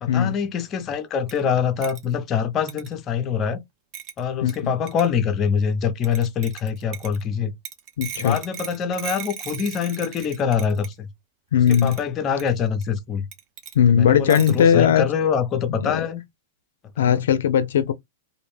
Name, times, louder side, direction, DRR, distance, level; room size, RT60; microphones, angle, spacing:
voice 1, 0.0-3.6 4.2-7.5 8.2-11.1 11.7-13.3 13.9-16.2 17.0-17.3, left 7 dB, 25° left, 0.5 m, -24 dB
sound 1, 1.3-1.4 1.8-2.1 2.7-2.9 3.9-4.2 4.5-4.6 4.9-5.1 6.0-7.2 7.6-10.9 11.7-12.0 12.4-12.5 12.8-12.9 13.3-13.7 14.3-14.6, right 9 dB, 40° right, 0.6 m, -37 dB
voice 2, 4.4-4.7 8.0-8.4 11.5-11.9 13.8-15.0 15.8-16.0 17.0-17.9, left 8 dB, 80° left, 0.4 m, -18 dB
2.5 x 2.1 x 3.2 m
supercardioid pair, 145°, 0 cm